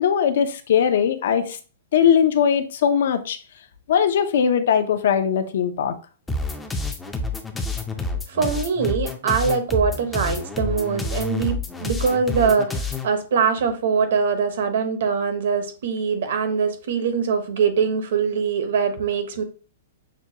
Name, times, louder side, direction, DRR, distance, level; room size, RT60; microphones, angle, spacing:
voice 1, 0.0-1.6 1.9-3.4 3.9-5.9, left 8 dB, 65° left, 0.5 m, -20 dB
sound 1, 6.3-13.1, left 3 dB, 5° left, 0.4 m, -28 dB
voice 2, 8.3-19.4, right 6 dB, 65° right, 0.9 m, -23 dB
6.0 x 2.2 x 2.8 m
hypercardioid pair, 160°, 0 cm